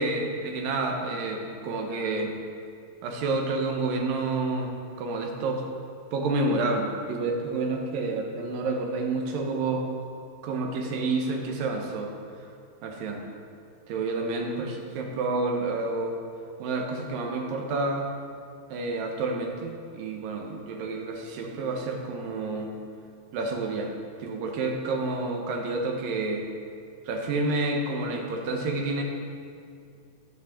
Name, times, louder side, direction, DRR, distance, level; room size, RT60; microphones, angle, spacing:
voice 1, 0.0-2.4 3.0-5.6 6.1-9.9 10.4-12.1 12.8-13.3 13.9-16.2 16.6-18.1 18.7-22.8 23.3-23.9 24.2-26.5 27.1-29.0, right 3 dB, 80° right, 2 dB, 2.9 m, -29 dB
18.5 x 8.6 x 3.7 m, 2.3 s
omnidirectional pair, 4.0 m